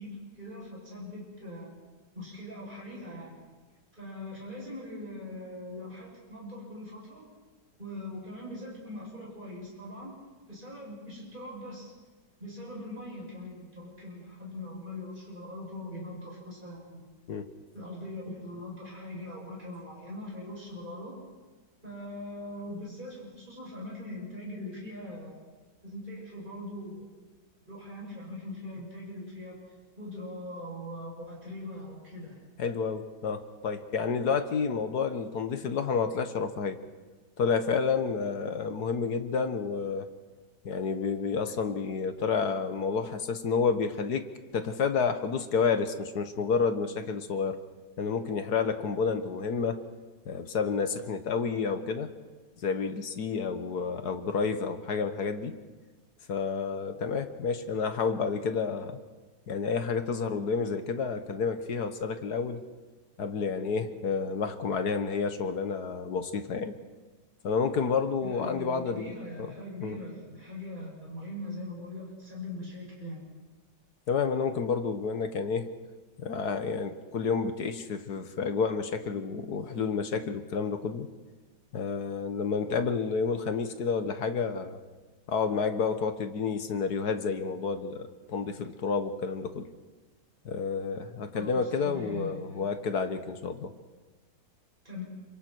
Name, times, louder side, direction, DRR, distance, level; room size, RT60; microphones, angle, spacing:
voice 1, 0.0-1.7 2.1-3.4 4.0-7.3 7.8-10.1 10.5-11.9 12.4-17.0 17.7-21.2 21.8-25.4 25.8-27.1 27.7-32.4 68.2-73.2 91.3-92.7 94.8-95.0, left 1 dB, 25° right, -4 dB, 8.0 m, -41 dB
voice 2, 32.6-36.8 37.4-40.1 40.6-47.6 48.0-49.8 50.2-52.1 52.6-55.6 56.3-59.0 59.5-62.6 63.2-66.8 67.4-69.5 69.8-70.0 74.1-75.7 76.2-81.1 81.7-84.8 85.3-89.7 90.4-93.7, left 5 dB, 65° left, 9 dB, 1.7 m, -30 dB
28.5 x 25.0 x 4.6 m, 1.3 s
omnidirectional pair, 1.9 m